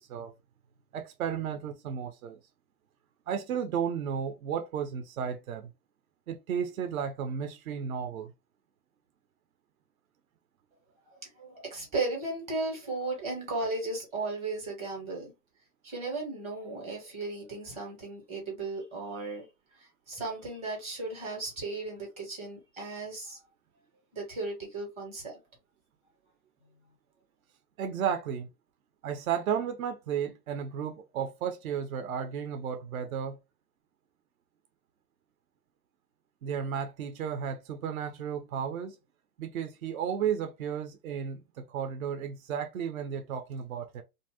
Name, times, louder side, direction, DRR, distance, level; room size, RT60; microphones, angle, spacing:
voice 1, 0.9-2.4 3.3-5.7 6.3-8.3 27.8-28.5 29.0-33.4 36.4-38.9 39.4-44.0, right 8 dB, 60° right, 0.7 m, -33 dB
voice 2, 11.1-15.3 15.8-19.5 19.7-23.4 24.1-25.4, right 3 dB, 15° right, 0.7 m, -36 dB
2.6 x 2.0 x 3.3 m
hypercardioid pair, 145°, 47 cm